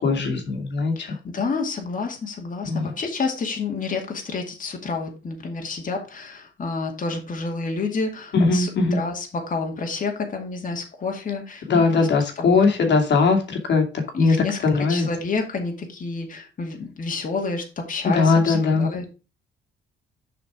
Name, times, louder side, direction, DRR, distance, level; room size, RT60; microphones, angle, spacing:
voice 1, 0.0-1.1 2.7-2.9 8.3-9.0 11.7-13.8 14.2-14.4 14.6-15.1 18.1-18.9, left 4 dB, 60° left, 3 dB, 2.5 m, -20 dB
voice 2, 1.0-12.1 12.4-12.6 14.1-14.6 14.9-19.1, left 4 dB, 40° left, 2 dB, 2.2 m, -29 dB
6.9 x 5.1 x 4.9 m, 0.30 s
cardioid pair, 90°, 20 cm